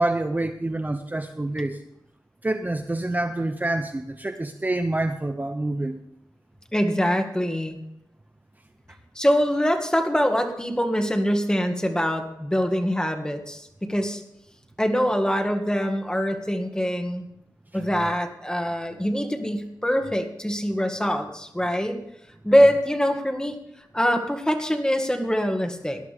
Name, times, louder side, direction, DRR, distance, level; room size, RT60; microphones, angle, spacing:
voice 1, 0.0-1.8 2.4-6.0, right 2 dB, 25° right, 7 dB, 0.8 m, -27 dB
voice 2, 6.7-7.8 9.2-14.2 14.8-17.3 17.7-22.0 22.4-26.0, equal, 10° left, 5 dB, 2.0 m, -24 dB
19.5 x 11.5 x 3.6 m, 0.81 s
wide cardioid pair, 75°, 8 cm